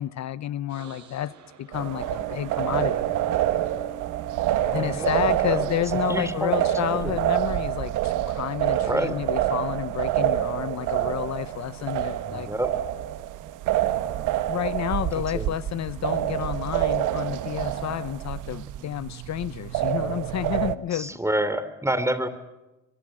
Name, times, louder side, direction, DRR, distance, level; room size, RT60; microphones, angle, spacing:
voice 1, 0.0-1.3 1.6-3.1 4.7-12.5 14.5-21.2, left 12 dB, 65° left, 0.8 m, -30 dB
sound 1, 0.7-6.7 7.1-11.3 11.6-14.2, right 10 dB, 70° right, 4.4 m, -48 dB
sound 2, 1.7-20.8, right 12 dB, 90° right, 1.3 m, -27 dB
voice 2, 4.7-5.3 5.6-5.7 6.1-7.0 8.9-9.1 12.3-12.7 15.3-15.5 20.9-22.3, right 1 dB, 10° right, 3.2 m, -28 dB
25.0 x 23.0 x 7.6 m
cardioid pair, 90°, 30 cm